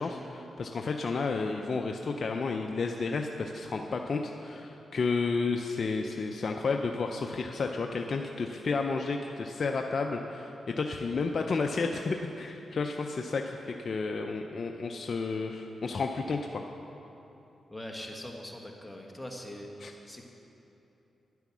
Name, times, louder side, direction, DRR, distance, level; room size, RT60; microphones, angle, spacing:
voice 1, 0.0-16.6 19.8-19.9, left 4 dB, 55° left, 3 dB, 0.5 m, -32 dB
voice 2, 17.7-20.2, left 1 dB, 10° left, 1 dB, 1.6 m, -42 dB
10.0 x 9.2 x 6.2 m, 3.0 s
cardioid pair, 70°, 0 cm